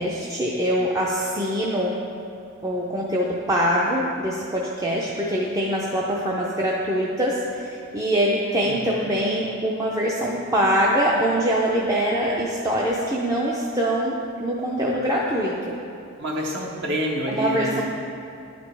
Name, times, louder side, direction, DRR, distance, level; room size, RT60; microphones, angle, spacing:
voice 1, 0.0-1.9 2.6-15.8 17.3-17.8, equal, 15° right, -4 dB, 0.4 m, -23 dB
voice 2, 8.6-9.0 16.2-17.8, equal, 55° right, -2 dB, 0.8 m, -28 dB
11.0 x 5.1 x 3.3 m, 2.5 s
head